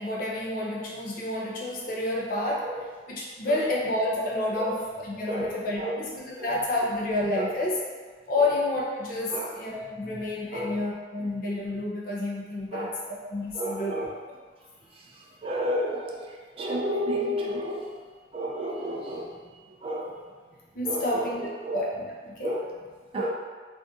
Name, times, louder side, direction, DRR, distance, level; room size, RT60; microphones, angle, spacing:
voice 1, 0.0-2.7 3.1-7.8 8.3-14.1 20.7-22.5, left 2 dB, 50° left, -3 dB, 0.6 m, -29 dB
voice 2, 2.4-2.8 3.4-3.6 4.6-4.8 5.3-6.0 6.4-6.5 7.3-7.5 9.3-9.5 10.1-10.2 10.5-10.8 12.7-13.0 13.5-14.1 14.9-18.0 18.3-19.4 19.8-20.2 20.8-21.8 22.4-22.7 23.1-23.3, equal, 30° right, -1 dB, 0.3 m, -32 dB
2.6 x 2.5 x 3.5 m, 1.5 s
head